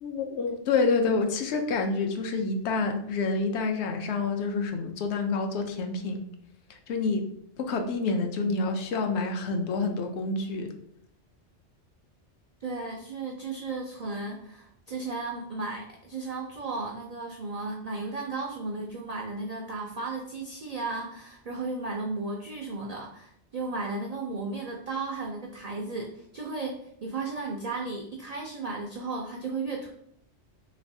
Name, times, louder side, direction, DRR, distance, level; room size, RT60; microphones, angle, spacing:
voice 1, 0.0-6.2 6.7-7.2 7.6-10.7, left 4 dB, 70° left, 5 dB, 0.8 m, -28 dB
voice 2, 12.6-29.9, right 3 dB, 70° right, 0 dB, 0.3 m, -34 dB
3.2 x 3.1 x 2.6 m, 0.70 s
omnidirectional pair, 1.2 m